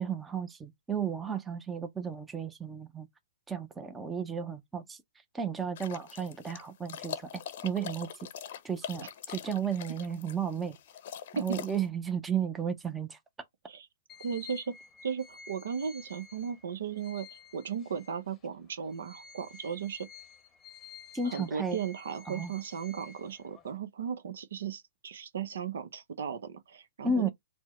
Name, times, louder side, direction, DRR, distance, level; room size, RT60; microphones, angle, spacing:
voice 1, 0.0-3.1 3.5-5.0 5.3-8.1 8.6-10.8 11.4-13.2 21.1-21.8 22.3-22.5 27.0-27.3, right 5 dB, 10° right, 0.6 m, -33 dB
sound 1, 5.8-11.9, left 9 dB, 55° left, 0.7 m, -43 dB
sound 2, 14.1-18.5 18.9-23.8, left 5 dB, 20° left, 0.8 m, -52 dB
voice 2, 14.2-14.8 15.0-20.1 21.2-27.3, right 7 dB, 75° right, 0.7 m, -36 dB
4.4 x 2.1 x 2.9 m
hypercardioid pair, 140°, 0 cm